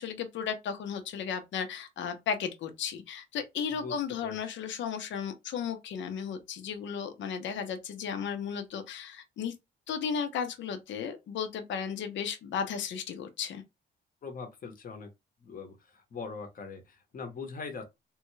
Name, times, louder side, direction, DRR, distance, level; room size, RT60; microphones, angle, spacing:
voice 1, 0.0-9.5 9.9-13.6, left 7 dB, 70° left, 0.8 m, -35 dB
voice 2, 14.2-15.1 15.4-17.9, left 5 dB, 45° left, 1.0 m, -41 dB
3.5 x 2.3 x 3.1 m
cardioid pair, 90°, 20 cm